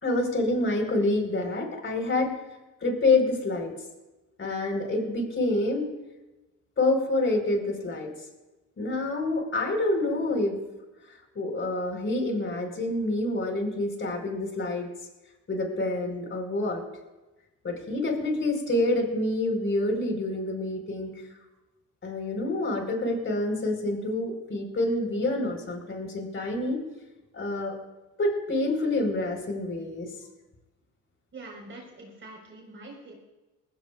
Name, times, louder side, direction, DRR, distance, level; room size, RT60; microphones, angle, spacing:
voice 1, 0.0-2.3 2.8-3.7 4.4-5.9 6.8-8.1 8.8-10.5 11.1-14.9 15.5-16.8 17.6-21.1 22.0-26.8 27.3-27.7 28.2-30.1, left 2 dB, 40° left, 3 dB, 4.4 m, -27 dB
voice 2, 31.3-33.1, right 2 dB, 40° right, -1 dB, 4.5 m, -44 dB
20.5 x 16.0 x 2.4 m, 1.1 s
cardioid pair, 90°, 30 cm